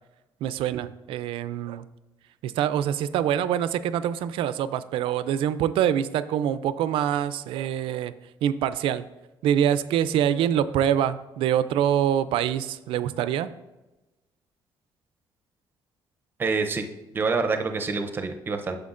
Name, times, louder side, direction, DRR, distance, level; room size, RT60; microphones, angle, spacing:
voice 1, 0.4-1.9 2.4-8.1 8.4-9.0 9.4-13.5, right 10 dB, 85° right, 14 dB, 0.4 m, -25 dB
voice 2, 16.4-16.8 17.1-18.8, right 4 dB, 25° right, 6 dB, 0.6 m, -26 dB
9.4 x 6.7 x 2.5 m, 1.1 s
cardioid pair, 165°, 9 cm